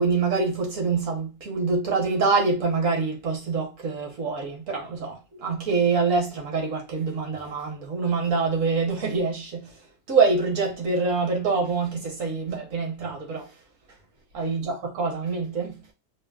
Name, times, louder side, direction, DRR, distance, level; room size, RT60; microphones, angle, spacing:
voice 1, 0.0-9.8 10.1-13.5 14.3-15.8, right 4 dB, 60° right, 1.4 m, -25 dB
4.3 x 2.0 x 2.3 m
omnidirectional pair, 1.6 m